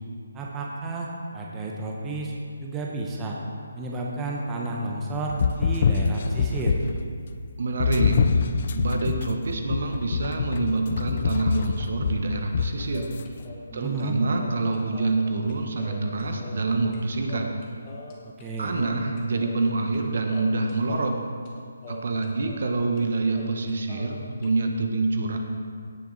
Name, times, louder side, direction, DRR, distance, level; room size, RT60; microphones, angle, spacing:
voice 1, 0.3-2.3 2.6-3.4 3.7-6.8 13.7-14.2 18.2-18.7, right 2 dB, 10° right, -2 dB, 1.0 m, -31 dB
sound 1, 5.3-7.1 7.8-13.2, left 6 dB, 45° left, 0.5 m, -25 dB
voice 2, 7.6-8.2 8.7-13.1 13.7-17.5 18.6-21.2 21.9-25.4, right 3 dB, 60° right, 3 dB, 1.3 m, -26 dB
sound 2, 12.9-17.0 17.3-18.5 18.7-20.0 20.3-22.7 23.0-23.1 23.3-24.5, left 3 dB, 25° left, 1.3 m, -43 dB
17.0 x 6.6 x 4.1 m, 2.2 s
hypercardioid pair, 165°, 0 cm